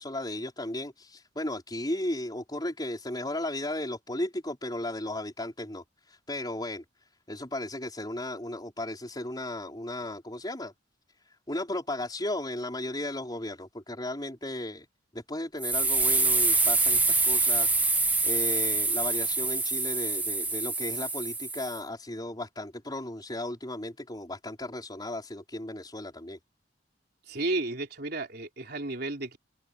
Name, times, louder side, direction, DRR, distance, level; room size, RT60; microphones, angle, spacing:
voice 1, 0.0-6.8 7.3-10.7 11.3-14.9 15.1-26.4, left 1 dB, 25° left, 5.3 m, -35 dB
sound 1, 15.6-21.8, right 3 dB, 10° right, 1.5 m, -26 dB
voice 2, 27.3-29.4, right 2 dB, 60° right, 3.8 m, -32 dB
head